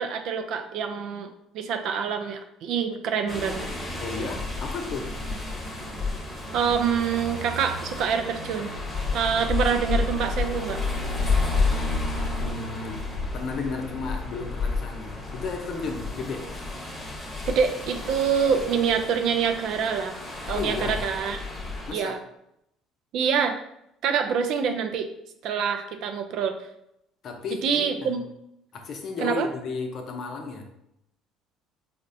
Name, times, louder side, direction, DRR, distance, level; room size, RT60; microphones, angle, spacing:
voice 1, 0.0-3.7 6.5-8.7 9.1-10.8 17.5-20.2 20.5-21.4 21.9-22.2 23.1-23.6 24.0-25.1 25.4-26.6 27.6-28.2 29.2-29.5, right 7 dB, 65° right, 6 dB, 0.4 m, -26 dB
sound 1, 3.3-21.9, left 3 dB, 25° left, 0.9 m, -31 dB
voice 2, 4.0-5.1 12.4-13.0 13.3-16.5 20.5-21.0 21.9-22.2 27.2-28.2 28.7-30.7, left 4 dB, 55° left, 4 dB, 0.6 m, -33 dB
4.1 x 2.1 x 2.6 m, 0.79 s
hypercardioid pair, 65°, 0 cm